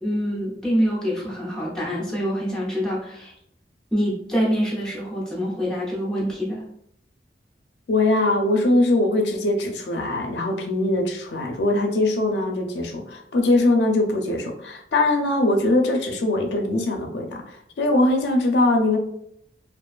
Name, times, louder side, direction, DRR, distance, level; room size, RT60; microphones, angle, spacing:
voice 1, 0.0-3.3 3.9-6.6, equal, 5° left, -5 dB, 0.7 m, -25 dB
voice 2, 7.9-19.0, left 2 dB, 80° left, 3 dB, 0.4 m, -21 dB
2.4 x 2.2 x 2.4 m, 0.72 s
head